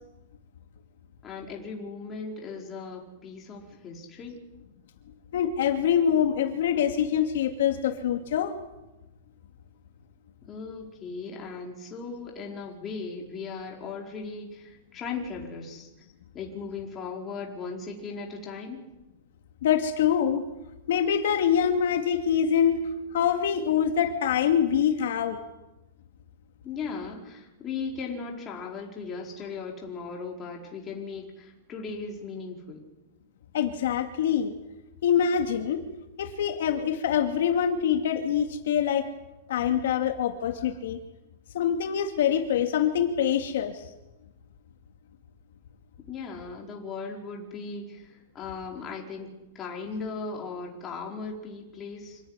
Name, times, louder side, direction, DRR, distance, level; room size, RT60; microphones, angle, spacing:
voice 1, 1.2-4.4 10.4-15.9 16.3-18.8 26.6-32.8 46.1-49.3 49.5-52.2, left 4 dB, 20° left, 0 dB, 4.6 m, -37 dB
voice 2, 5.3-8.5 19.6-20.4 20.9-22.9 23.1-25.4 33.5-34.5 35.0-35.8 36.2-39.1 39.5-41.0 41.5-43.8, left 8 dB, 70° left, 5 dB, 2.5 m, -25 dB
26.5 x 17.0 x 9.8 m, 0.98 s
supercardioid pair, 170°, 0 cm